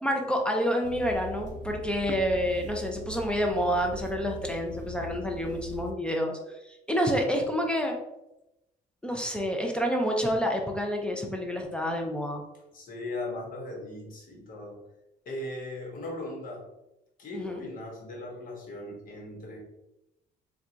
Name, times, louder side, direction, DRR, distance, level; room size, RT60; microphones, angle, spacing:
voice 1, 0.0-6.4 6.9-7.9 9.0-12.4 17.3-17.6, equal, 5° left, 1 dB, 0.4 m, -28 dB
sound 1, 0.8-5.9, left 1 dB, 50° right, 0.5 m, -41 dB
voice 2, 12.7-14.8 15.2-16.6 17.2-19.6, left 1 dB, 55° left, -1 dB, 1.0 m, -38 dB
4.1 x 2.3 x 2.5 m, 0.93 s
cardioid pair, 110°, 17 cm